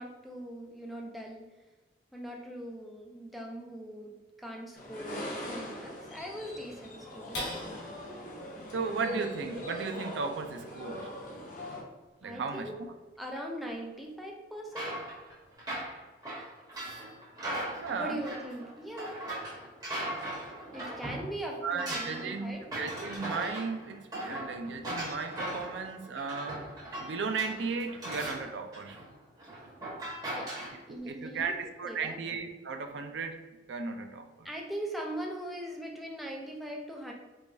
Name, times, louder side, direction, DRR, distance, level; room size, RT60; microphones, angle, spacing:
voice 1, 0.0-1.5 2.1-7.5 12.2-12.7 13.2-15.0 18.0-19.2 20.7-22.6 30.3-30.5 30.9-31.5 31.8-32.2 34.4-37.1, right 1 dB, ahead, -1 dB, 0.5 m, -40 dB
sound 1, 4.8-11.8, equal, 45° left, 0.7 m, -41 dB
sound 2, 7.3-14.0 14.5-14.6 15.0-15.5, left 1 dB, 80° left, 1.1 m, -47 dB
voice 2, 8.7-11.1 12.2-12.9 17.8-18.2 21.5-26.6 27.0-29.0 30.9-33.4 33.7-34.5, right 4 dB, 70° right, 6 dB, 0.4 m, -35 dB
sound 3, 14.7-21.3 21.5-30.7, right 1 dB, 20° right, 1.2 m, -38 dB
4.7 x 2.3 x 2.6 m, 1.2 s
head